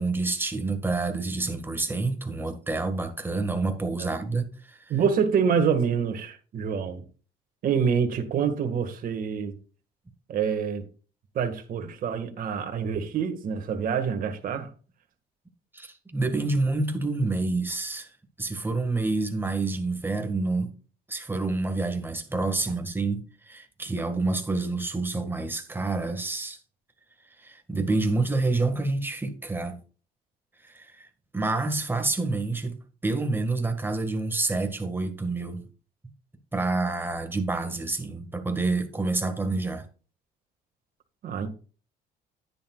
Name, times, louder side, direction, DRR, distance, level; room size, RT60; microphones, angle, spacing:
voice 1, 0.0-4.9 15.7-18.1 18.4-20.7 21.1-26.6 27.4-29.8 30.6-31.1 31.3-35.6 36.5-39.8, right 3 dB, 10° right, 1.8 m, -28 dB
voice 2, 4.9-7.0 7.6-9.5 10.3-10.8 11.4-14.7 41.2-41.5, right 7 dB, 55° right, 1.8 m, -26 dB
10.0 x 9.8 x 2.4 m
cardioid pair, 110°, 17 cm